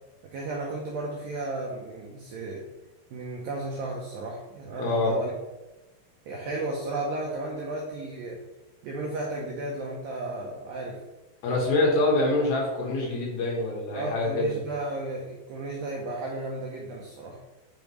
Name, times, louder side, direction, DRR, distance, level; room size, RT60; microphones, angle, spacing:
voice 1, 0.3-2.7 3.1-5.3 6.3-8.4 8.8-11.0 13.9-17.4, right 2 dB, 85° right, -1 dB, 2.0 m, -34 dB
voice 2, 4.8-5.2 11.4-14.5, left 2 dB, 65° left, -2 dB, 2.9 m, -25 dB
8.0 x 5.2 x 3.1 m, 1.1 s
omnidirectional pair, 5.1 m